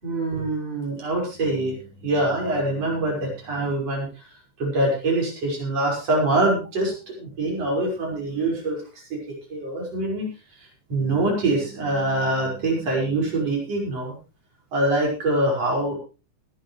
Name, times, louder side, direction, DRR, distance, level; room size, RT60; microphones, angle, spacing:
voice 1, 0.0-4.1 4.6-8.8 9.1-9.2 9.5-10.3 10.9-14.2 14.7-16.0, right 2 dB, 55° right, -1 dB, 6.7 m, -24 dB
20.5 x 11.5 x 3.3 m, 0.32 s
omnidirectional pair, 3.4 m